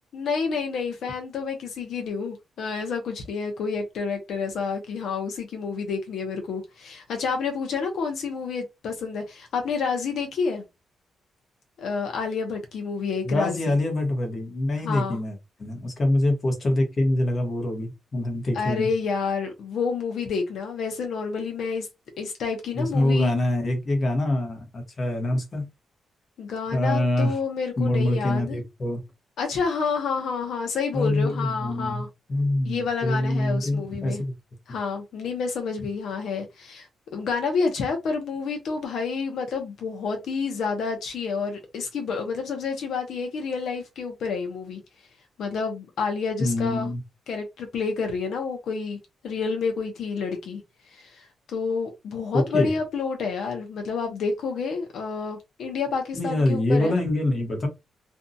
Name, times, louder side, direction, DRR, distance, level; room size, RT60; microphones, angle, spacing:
voice 1, 0.1-10.6 11.8-13.8 14.8-15.2 18.5-21.9 22.2-23.3 26.4-28.6 29.4-32.1 32.6-34.2 34.7-44.8 45.4-46.9 47.3-49.0 49.2-50.6 50.9-56.9, left 5 dB, 80° left, 0.6 m, -29 dB
voice 2, 13.2-18.9 22.8-25.7 26.7-27.3 27.8-29.0 30.9-32.0 32.3-34.3 46.4-47.0 52.3-52.7 56.1-57.7, left 1 dB, 35° left, 1.0 m, -25 dB
2.6 x 2.2 x 2.6 m
cardioid pair, 135°, 0 cm